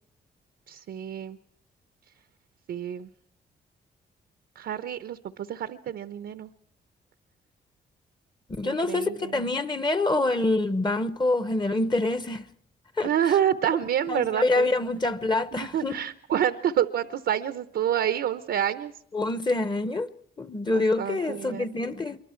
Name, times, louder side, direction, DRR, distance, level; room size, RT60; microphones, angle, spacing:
voice 1, 0.7-1.4 2.7-3.1 4.6-6.5 8.6-9.4 13.0-14.7 15.5-18.9 20.6-21.8, right 10 dB, 75° right, 0.8 m, -28 dB
voice 2, 8.6-12.5 13.0-13.1 14.0-16.0 19.1-20.1 20.4-22.2, left 2 dB, 25° left, 1.1 m, -26 dB
26.0 x 23.5 x 4.5 m
cardioid pair, 80°, 19 cm